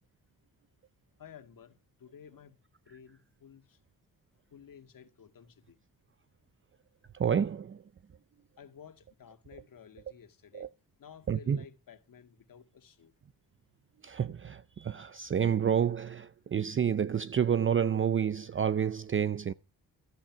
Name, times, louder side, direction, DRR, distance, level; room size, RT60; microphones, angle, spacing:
voice 1, 1.2-2.6 2.9-3.8 4.5-5.8 8.6-10.7 11.0-13.1, left 7 dB, 60° left, 1.9 m, -53 dB
voice 2, 7.1-7.9 10.5-10.7 11.3-11.6 14.0-19.5, right 8 dB, 35° right, 0.5 m, -29 dB
14.0 x 9.0 x 5.8 m
cardioid pair, 80°, 37 cm